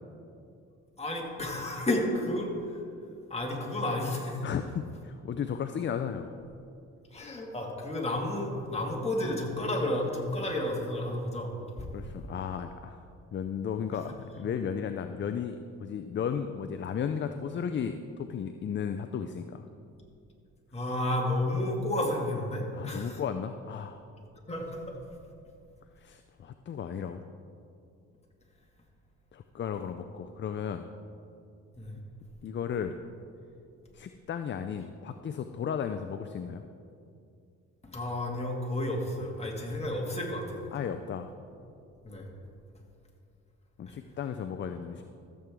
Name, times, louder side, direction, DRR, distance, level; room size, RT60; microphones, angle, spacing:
voice 1, 1.0-2.8 3.3-4.4 7.1-11.5 11.8-11.9 20.7-23.2 24.5-24.8 31.8-32.0 37.8-40.6 42.0-42.3 43.9-44.0, left 1 dB, 20° left, -1 dB, 2.1 m, -31 dB
voice 2, 4.4-6.3 11.9-13.0 13.3-19.6 22.7-24.0 26.0-27.2 29.3-30.9 32.4-33.0 33.9-36.6 40.7-41.3 43.8-45.0, left 7 dB, 40° left, 8 dB, 0.5 m, -34 dB
14.0 x 7.6 x 3.6 m, 2.5 s
cardioid pair, 90°, 30 cm